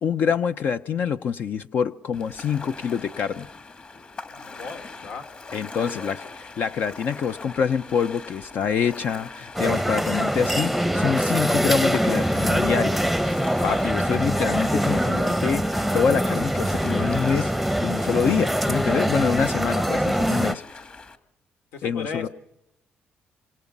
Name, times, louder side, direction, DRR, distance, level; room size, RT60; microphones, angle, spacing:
voice 1, 0.0-3.5 5.5-13.0 13.6-17.5 17.8-20.8 21.8-22.3, left 7 dB, 60° left, 9 dB, 0.8 m, -26 dB
Ocean, 2.1-21.2, left 3 dB, 35° left, 2.2 m, -42 dB
voice 2, 4.3-5.3 5.7-6.2 21.7-22.3, left 5 dB, 85° left, 6 dB, 3.0 m, -36 dB
sound 1, 9.5-20.5, equal, ahead, 0.8 m, -23 dB
27.0 x 26.0 x 5.4 m, 0.82 s
cardioid pair, 105°, 4 cm